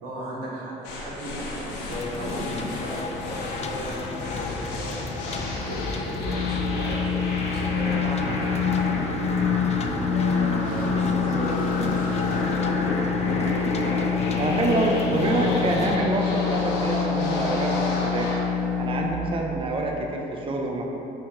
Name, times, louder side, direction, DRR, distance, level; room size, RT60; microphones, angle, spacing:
voice 1, 0.0-9.7 10.0-13.6, right 1 dB, 90° right, -5 dB, 1.5 m, -35 dB
sound 1, 0.8-18.5, left 3 dB, 85° left, 1.0 m, -30 dB
sound 2, 1.9-16.0, left 4 dB, 40° left, 0.5 m, -34 dB
sound 3, 6.2-19.1, left 6 dB, 55° left, 0.9 m, -27 dB
voice 2, 14.4-18.3 18.8-21.0, right 2 dB, 30° right, 1 dB, 0.7 m, -26 dB
5.3 x 3.6 x 5.6 m, 3.0 s
supercardioid pair, 75°, 17 cm